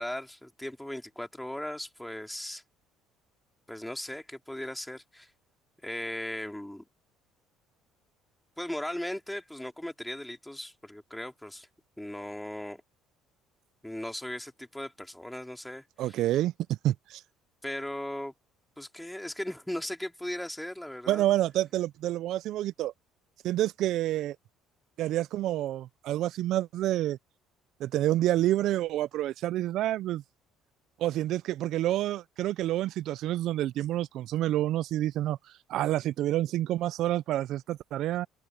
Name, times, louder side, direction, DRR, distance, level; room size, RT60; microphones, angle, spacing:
voice 1, 0.0-2.6 3.7-5.3 5.8-6.9 8.6-11.7 12.0-12.8 13.8-16.1 17.6-18.3 18.8-21.2, left 1 dB, 5° left, 3.2 m, -37 dB
voice 2, 16.0-16.5 16.8-17.2 21.1-22.9 23.4-24.4 25.0-27.2 27.8-30.2 31.0-35.4 35.7-38.3, right 14 dB, 65° right, 0.3 m, -28 dB
cardioid pair, 100°, 0 cm